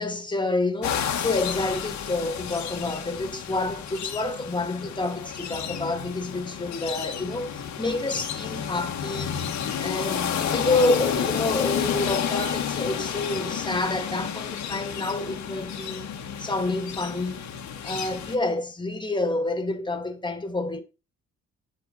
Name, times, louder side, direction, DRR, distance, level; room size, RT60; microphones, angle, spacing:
voice 1, 0.0-9.3 9.8-16.0 16.4-17.4 17.8-20.8, left 2 dB, 15° left, 2.2 m, -28 dB
sound 1, 0.8-18.4, left 8 dB, 70° left, 2.0 m, -31 dB
8.3 x 8.2 x 4.1 m
cardioid pair, 90°, 30 cm